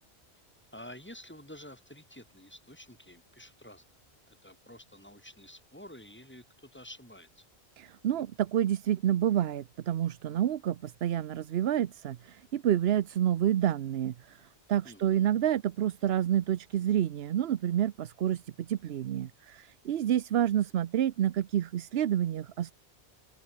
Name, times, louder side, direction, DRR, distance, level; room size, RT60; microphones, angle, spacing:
voice 1, 0.7-3.8 4.3-7.4 14.8-15.4, left 1 dB, 10° left, 6.5 m, -50 dB
voice 2, 7.8-14.4 14.7-22.7, right 10 dB, 65° right, 0.9 m, -28 dB
omnidirectional pair, 1.1 m